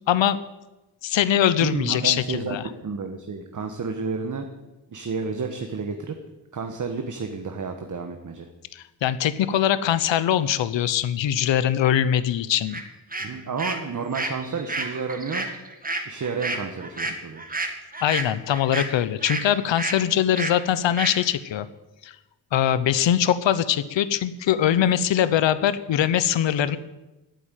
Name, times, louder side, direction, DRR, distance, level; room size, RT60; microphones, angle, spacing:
voice 1, 0.1-0.4 1.0-2.6 8.7-12.8 18.0-21.7 22.0-22.1 22.5-26.8, left 10 dB, 90° left, 15 dB, 0.9 m, -22 dB
voice 2, 1.6-2.6 2.8-4.5 4.9-6.2 6.5-8.5 13.2-15.5 16.0-17.6, right 5 dB, 40° right, 5 dB, 1.4 m, -31 dB
sound 1, 12.7-12.8 13.1-19.5 19.8-20.0 20.3-20.6 21.0-21.2, right 2 dB, 20° right, 1.8 m, -30 dB
13.5 x 8.6 x 9.2 m, 1.0 s
wide cardioid pair, 130°, 44 cm